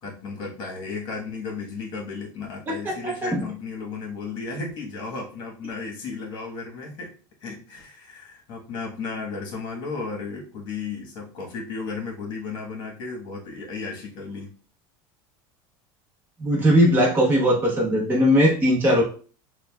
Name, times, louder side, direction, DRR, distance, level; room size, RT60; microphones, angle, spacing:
voice 1, 0.0-7.1 7.4-14.5, left 4 dB, 45° left, -1 dB, 1.4 m, -34 dB
voice 2, 2.7-3.4 16.4-19.0, equal, 15° right, -3 dB, 0.9 m, -19 dB
6.4 x 2.3 x 2.4 m, 0.40 s
supercardioid pair, 150°, 11 cm